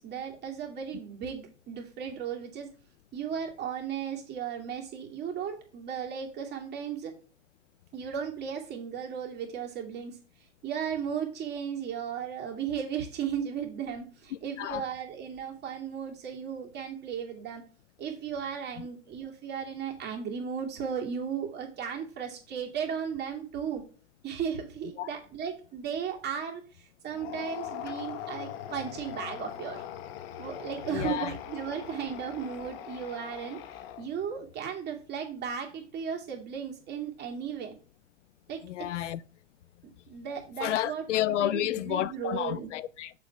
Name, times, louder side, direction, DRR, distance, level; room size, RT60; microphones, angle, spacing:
voice 1, 0.0-2.7 3.1-7.1 7.9-10.2 10.6-17.6 18.0-23.8 24.2-29.8 30.4-33.6 34.0-37.8 38.5-38.6 39.8-42.7, right 7 dB, 25° right, 2.7 m, -35 dB
sound 1, 27.1-34.3, left 10 dB, 55° left, 1.1 m, -41 dB
voice 2, 30.9-31.3 38.6-39.2 40.6-43.1, left 13 dB, 75° left, 0.6 m, -30 dB
6.9 x 5.4 x 5.9 m
hypercardioid pair, 125°, 37 cm